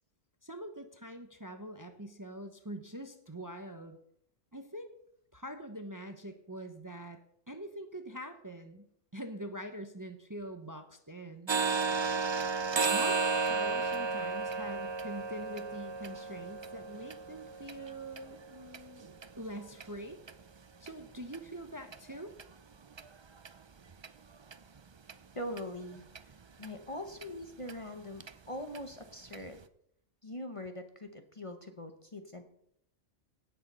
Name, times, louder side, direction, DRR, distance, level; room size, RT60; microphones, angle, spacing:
voice 1, 0.4-4.0 4.5-4.9 5.3-7.2 7.5-11.5 12.9-19.1 19.4-20.2 20.8-22.3, right 1 dB, 20° right, 7 dB, 0.8 m, -44 dB
sound 1, 11.5-19.3 19.7-19.9 20.3-20.4 20.9-21.0 21.3-21.4 21.9-22.0 22.4-22.5 23.0-23.1 23.4-23.5 24.0-24.1 24.5-24.6 25.1-25.2 25.6-25.7 26.1-26.2 26.6-26.7 27.2-27.3 27.7-27.8 28.2-28.3 28.7-28.8 29.3-29.4, right 4 dB, 45° right, 0.3 m, -33 dB
voice 2, 25.3-26.0 26.6-29.6 30.2-32.4, left 1 dB, 30° left, 6 dB, 0.9 m, -42 dB
17.0 x 6.7 x 5.5 m, 0.72 s
omnidirectional pair, 1.2 m